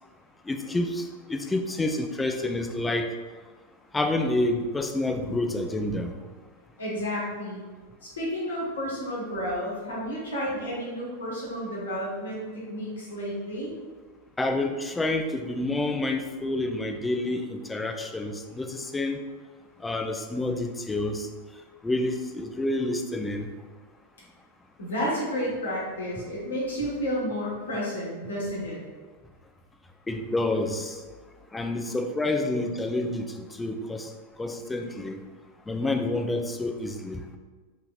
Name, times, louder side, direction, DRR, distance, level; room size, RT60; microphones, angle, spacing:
voice 1, 0.5-3.1 3.9-6.1 14.4-19.2 19.8-21.3 21.8-23.5 30.1-31.0 31.5-34.1 34.4-35.2 35.7-37.2, left 2 dB, 10° left, 5 dB, 0.3 m, -28 dB
voice 2, 6.8-7.6 8.0-13.7 24.8-28.8, equal, 65° left, -5 dB, 1.2 m, -31 dB
4.5 x 2.8 x 2.3 m, 1.4 s
figure-of-eight pair, 90°, 0 cm